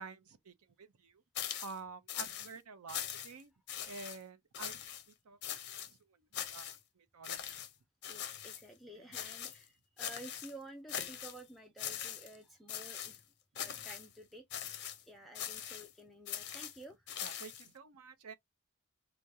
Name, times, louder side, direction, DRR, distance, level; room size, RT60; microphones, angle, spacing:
voice 1, 0.0-3.5 3.9-4.8 5.1-5.4 5.7-7.6 9.0-9.2 17.2-18.3, right 4 dB, 85° right, 0.6 m, -50 dB
sound 1, 1.4-1.8 2.1-2.5 2.9-3.4 3.7-4.2 4.5-5.0 5.4-5.9 6.3-6.8 7.2-7.7 8.0-8.6 9.1-9.6 10.0-10.5 10.9-11.4 11.8-12.4 12.7-13.2 13.6-14.1 14.5-15.0 15.4-15.9 16.3-17.7, left 9 dB, 50° left, 0.6 m, -42 dB
voice 2, 8.1-13.2 13.5-14.7 15.1-17.1, right 1 dB, ahead, 0.4 m, -52 dB
4.7 x 2.1 x 2.6 m
head